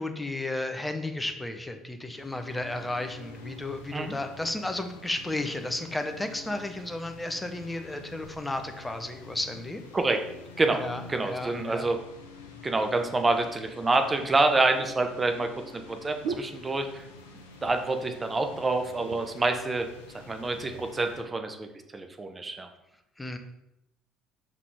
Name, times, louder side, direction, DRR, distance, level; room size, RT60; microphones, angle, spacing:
voice 1, 0.0-9.8 10.7-11.9 23.2-23.4, left 2 dB, 10° left, 7 dB, 0.8 m, -33 dB
sound 1, 2.1-21.2, left 3 dB, 75° left, 0.7 m, -48 dB
voice 2, 11.1-12.0 12.6-17.1 17.6-19.9 20.1-22.7, right 2 dB, 20° right, 6 dB, 0.7 m, -27 dB
sound 2, 14.2-17.3 17.6-18.0 18.4-18.5 18.8-19.5 20.2-20.9 21.6-21.7, right 5 dB, 55° right, 0.5 m, -41 dB
5.7 x 3.9 x 4.7 m, 0.87 s
figure-of-eight pair, 55°, 0 cm